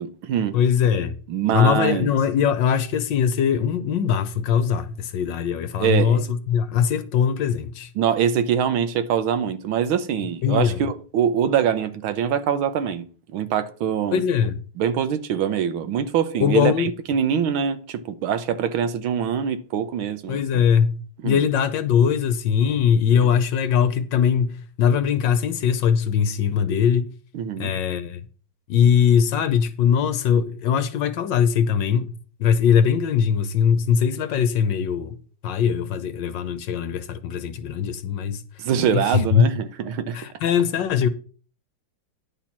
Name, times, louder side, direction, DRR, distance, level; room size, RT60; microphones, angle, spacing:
voice 1, 0.0-0.6 1.3-2.1 5.8-6.2 8.0-13.1 13.3-14.2 14.8-20.4 21.2-21.4 27.3-27.7 38.6-40.2, right 8 dB, 80° right, 1.7 m, -24 dB
voice 2, 0.5-1.2 1.5-7.9 10.4-10.9 14.1-14.6 16.4-16.9 20.3-27.1 27.6-28.3 28.7-35.2 35.4-38.4 38.9-39.4 40.1-41.1, left 8 dB, 65° left, 1.3 m, -21 dB
10.0 x 4.4 x 7.2 m
omnidirectional pair, 2.3 m